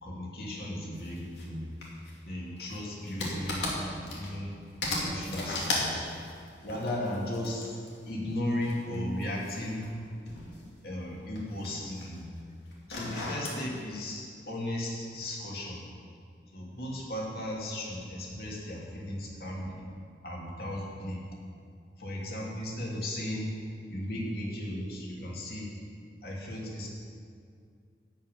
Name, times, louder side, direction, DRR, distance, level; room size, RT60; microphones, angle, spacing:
voice 1, 0.0-1.7 2.2-4.5 5.0-6.2 6.6-7.8 8.0-9.9 10.8-12.3 12.9-15.8 16.5-19.8 20.2-21.2 22.0-23.5 23.9-25.7 26.2-26.9, left 1 dB, 60° left, -3 dB, 2.6 m, -36 dB
sound 1, 0.9-1.5 1.8-4.5 4.8-8.0 8.6-10.7 11.0-12.2 12.7-13.6, left 2 dB, 85° left, 2.6 m, -36 dB
12.0 x 5.6 x 9.2 m, 2.3 s
head